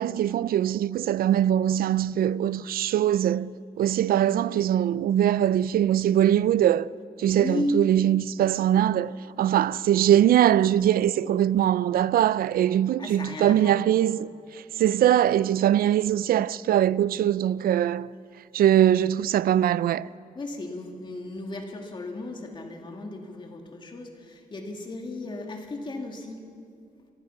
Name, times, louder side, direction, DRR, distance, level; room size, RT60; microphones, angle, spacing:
voice 1, 0.0-6.9 7.2-18.1 18.5-20.1, right 11 dB, 85° right, 0.4 m, -22 dB
voice 2, 7.3-7.8 13.0-13.9 20.3-26.4, left 2 dB, 30° left, 2.4 m, -34 dB
25.5 x 18.5 x 5.7 m
wide cardioid pair, 160°, 15 cm